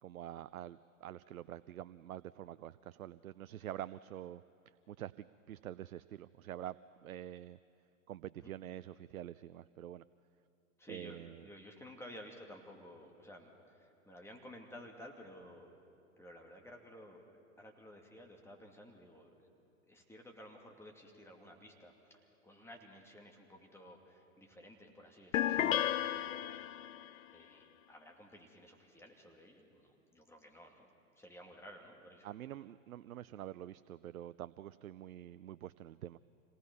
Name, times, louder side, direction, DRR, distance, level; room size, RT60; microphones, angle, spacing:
voice 1, 0.0-4.4 4.9-6.8 7.0-7.6 8.1-10.0 10.9-11.5 25.5-25.9 32.2-36.2, right 12 dB, 85° right, 16 dB, 0.5 m, -46 dB
voice 2, 10.8-15.7 16.2-17.2 17.6-19.5 19.9-25.7 26.1-26.7 27.3-30.9 31.1-32.3, equal, 5° left, 1 dB, 2.6 m, -54 dB
sound 1, 25.3-27.1, left 12 dB, 70° left, 0.7 m, -33 dB
26.5 x 18.5 x 5.6 m, 2.8 s
hypercardioid pair, 110°, 41 cm